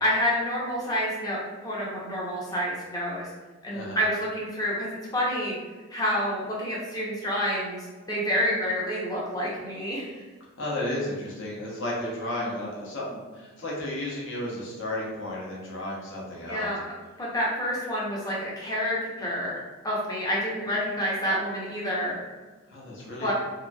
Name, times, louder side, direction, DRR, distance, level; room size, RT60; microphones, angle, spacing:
voice 1, 0.0-3.3 3.6-4.9 5.1-5.6 5.9-10.2 16.5-16.8 17.2-19.6 19.8-22.2 23.2-23.3, equal, 15° left, -5 dB, 0.6 m, -28 dB
voice 2, 3.7-4.0 10.6-16.7 22.7-23.3, left 1 dB, 55° left, -4 dB, 0.8 m, -33 dB
2.8 x 2.6 x 2.2 m, 1.3 s
head